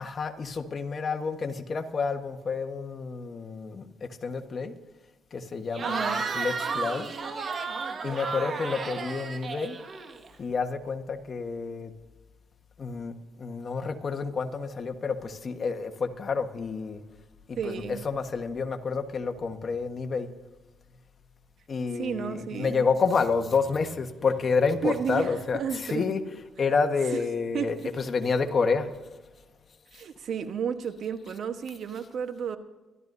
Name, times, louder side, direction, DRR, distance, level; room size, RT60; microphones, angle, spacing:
voice 1, 0.0-4.7 5.3-7.1 8.0-9.8 10.4-11.9 12.8-17.0 17.5-20.3 21.7-29.1 31.3-31.4, left 5 dB, 45° left, 6 dB, 1.4 m, -29 dB
Cheering / Crowd, 5.7-10.4, right 4 dB, 45° right, 1.7 m, -33 dB
voice 2, 5.8-6.2 17.6-18.0 21.9-22.8 24.8-26.0 27.5-27.7 29.9-32.6, right 7 dB, 65° right, 8 dB, 1.2 m, -32 dB
26.0 x 12.5 x 2.7 m, 1.2 s
cardioid pair, 90°, 0 cm